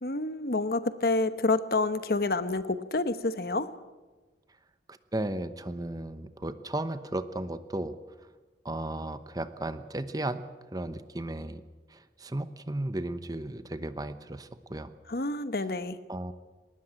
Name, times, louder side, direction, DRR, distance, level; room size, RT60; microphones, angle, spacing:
voice 1, 0.0-3.7 15.1-16.0, left 2 dB, 55° left, 12 dB, 1.1 m, -28 dB
voice 2, 4.9-8.0 8.6-10.4 10.7-11.6 11.9-14.9 16.1-16.3, right 1 dB, 20° right, 12 dB, 0.9 m, -35 dB
20.0 x 19.5 x 8.9 m, 1.2 s
head